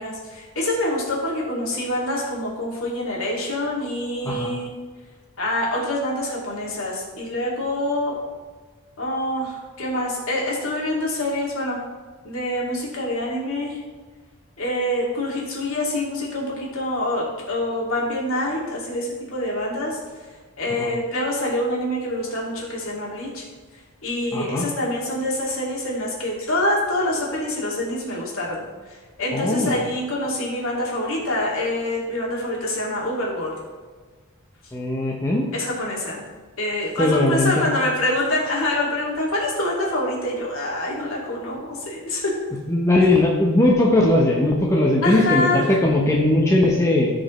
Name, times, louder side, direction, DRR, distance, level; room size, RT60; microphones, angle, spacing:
voice 1, 0.0-4.7 5.4-8.2 9.0-11.8 12.2-13.8 14.6-20.0 20.6-23.4 24.0-28.6 29.2-33.5 35.5-36.2 36.6-42.4 45.0-45.6, left 1 dB, 70° left, -4 dB, 2.3 m, -26 dB
voice 2, 24.3-24.7 29.3-29.8 34.7-35.5 37.0-37.7 42.7-47.1, left 1 dB, 15° left, -2 dB, 0.8 m, -19 dB
14.0 x 5.2 x 3.1 m, 1.4 s
head